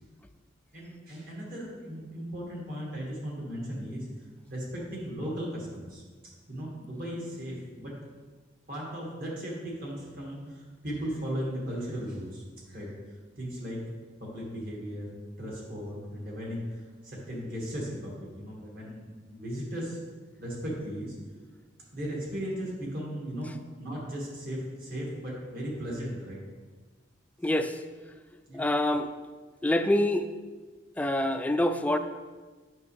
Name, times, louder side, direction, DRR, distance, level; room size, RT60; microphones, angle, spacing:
voice 1, 0.7-4.1 4.5-6.0 6.5-8.0 8.7-13.8 14.2-15.1 15.4-20.0 20.4-21.2 21.9-23.5 23.8-26.4 28.5-28.7, equal, 50° right, -3 dB, 2.2 m, -37 dB
voice 2, 27.4-27.8 28.5-29.1 29.6-30.3 31.0-32.0, left 1 dB, 10° left, 8 dB, 0.3 m, -26 dB
8.5 x 6.3 x 3.5 m, 1.4 s
head